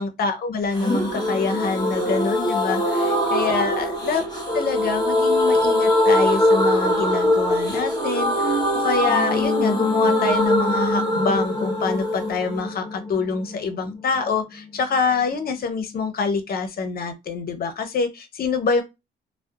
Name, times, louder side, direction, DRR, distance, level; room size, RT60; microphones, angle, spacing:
voice 1, 0.0-4.2 4.5-18.8, left 4 dB, 50° left, 0.6 m, -26 dB
sound 1, 0.7-14.4 14.6-14.7 15.0-15.1, left 1 dB, 20° left, 0.9 m, -22 dB
2.7 x 2.1 x 2.3 m
cardioid pair, 90°, 20 cm